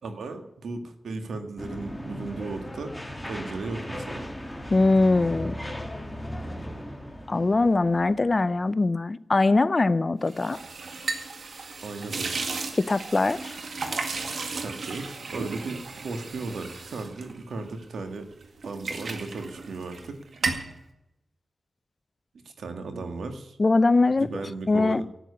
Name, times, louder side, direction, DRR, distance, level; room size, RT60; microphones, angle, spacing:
voice 1, 0.0-2.9 3.3-4.3 11.8-12.6 14.6-18.3 18.7-20.2 22.6-23.6 24.2-25.0, right 3 dB, 85° right, 1.9 m, -36 dB
sound 1, 1.6-8.7, equal, 10° left, 2.4 m, -37 dB
voice 2, 4.7-5.6 7.3-10.6 12.8-13.5 23.6-24.3 24.7-25.0, left 3 dB, 40° left, 0.6 m, -22 dB
sound 2, 10.3-18.0 18.4-20.1 20.3-20.7, right 4 dB, 70° right, 2.0 m, -34 dB
12.0 x 9.3 x 9.5 m
cardioid pair, 55°, 0 cm